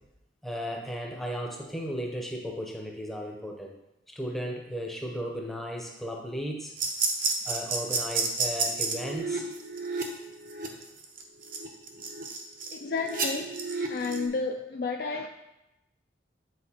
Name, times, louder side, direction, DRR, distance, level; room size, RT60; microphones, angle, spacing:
voice 1, 0.4-3.7 4.1-6.7 7.4-9.5, equal, ahead, 0.6 m, -35 dB
sound 1, 6.8-14.3, right 4 dB, 45° right, 0.7 m, -31 dB
voice 2, 12.7-13.6 13.9-15.3, left 4 dB, 55° left, 0.3 m, -31 dB
8.0 x 4.5 x 2.8 m
head